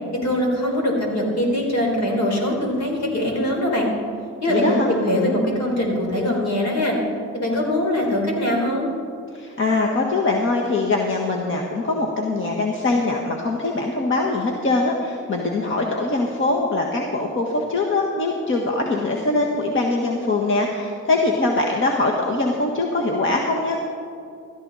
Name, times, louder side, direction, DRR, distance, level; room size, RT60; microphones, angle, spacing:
voice 1, 0.2-3.9 4.4-7.0 7.3-8.9, left 1 dB, 65° left, 0 dB, 4.3 m, -22 dB
voice 2, 4.5-4.9 9.3-23.8, left 2 dB, 40° left, 0 dB, 1.5 m, -22 dB
16.5 x 13.5 x 4.1 m, 2.4 s
cardioid pair, 90°, 30 cm